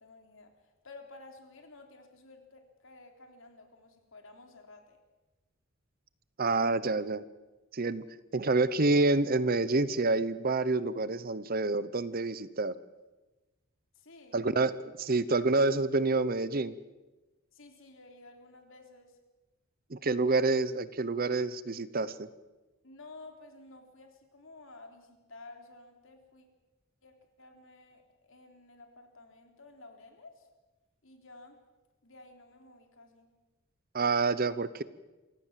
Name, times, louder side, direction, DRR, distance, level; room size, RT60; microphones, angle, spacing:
voice 1, 0.0-5.0 14.0-14.4 17.5-19.2 22.8-26.5 27.0-30.5 31.0-31.6 32.0-33.3, left 2 dB, 60° left, 5 dB, 3.5 m, -53 dB
voice 2, 6.4-7.2 7.7-8.0 8.3-12.7 14.3-16.7 19.9-22.3 33.9-34.8, right 3 dB, 40° right, 16 dB, 0.8 m, -28 dB
27.0 x 16.5 x 7.5 m, 1.1 s
head